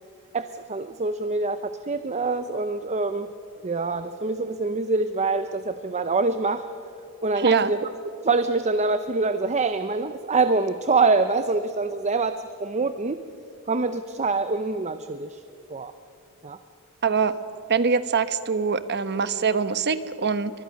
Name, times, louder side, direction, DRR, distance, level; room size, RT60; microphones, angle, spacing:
voice 1, 0.3-3.3 3.6-6.7 7.2-7.9 8.2-13.2 13.7-15.4 15.7-15.9 16.4-16.6, right 3 dB, 30° right, 10 dB, 0.7 m, -25 dB
voice 2, 17.0-17.3 17.7-20.5, right 5 dB, 50° right, 12 dB, 1.1 m, -23 dB
30.0 x 24.0 x 6.5 m, 2.7 s
head